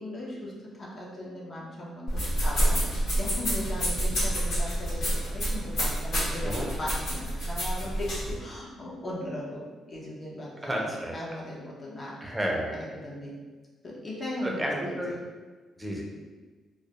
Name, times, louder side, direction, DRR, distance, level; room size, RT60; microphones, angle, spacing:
voice 1, 0.0-10.9 11.1-12.2 13.0-13.3 13.8-15.0, left 1 dB, 40° left, -5 dB, 0.7 m, -38 dB
sound 1, 2.1-8.3, right 1 dB, 65° left, 1.1 m, -28 dB
voice 2, 10.6-11.1 12.2-13.1 14.4-15.1 15.8-16.0, equal, 15° right, -1 dB, 0.5 m, -32 dB
2.3 x 2.1 x 2.9 m, 1.3 s
cardioid pair, 90°, 0 cm